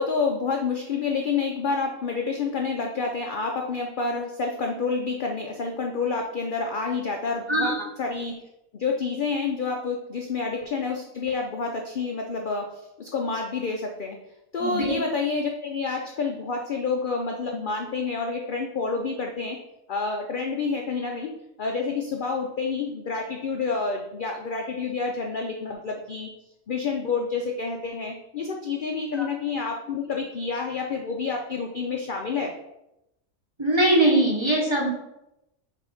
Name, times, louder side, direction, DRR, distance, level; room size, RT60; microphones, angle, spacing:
voice 1, 0.0-7.7 8.0-8.4 8.7-14.2 14.5-19.6 19.9-21.3 21.6-26.3 26.7-32.6, left 4 dB, 55° left, 2 dB, 0.6 m, -28 dB
voice 2, 14.6-15.0 29.1-29.3 33.6-34.9, right 1 dB, 20° right, -2 dB, 1.1 m, -21 dB
6.5 x 3.4 x 4.9 m, 0.87 s
omnidirectional pair, 1.5 m